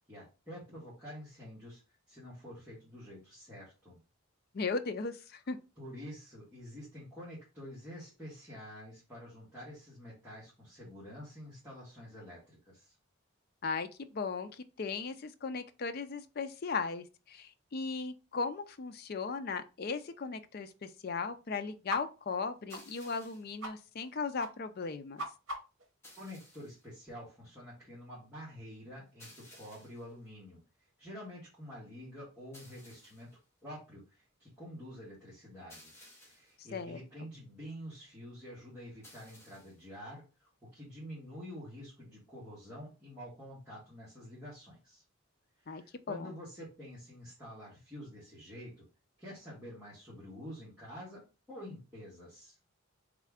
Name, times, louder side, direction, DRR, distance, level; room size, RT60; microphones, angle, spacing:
voice 1, 0.1-1.8 2.1-4.0 5.8-13.0 26.2-33.3 33.6-35.9 36.3-45.0 45.6-48.8 49.2-52.6, equal, 5° right, 1.6 m, -48 dB
voice 2, 4.5-5.6 13.6-25.2 36.6-37.0 45.7-45.8 46.1-46.3, left 4 dB, 45° left, 0.4 m, -37 dB
sound 1, 21.9-22.0 22.3-22.4 22.7-22.8 23.2-23.3 23.6-23.7 24.0-24.1 24.4-24.5 24.8-25.9, right 1 dB, 65° right, 0.9 m, -40 dB
sound 2, 22.7-23.6 26.0-26.9 29.2-30.1 32.5-33.4 35.7-36.6 39.0-39.9, left 1 dB, 10° left, 1.2 m, -57 dB
3.7 x 3.2 x 3.5 m
head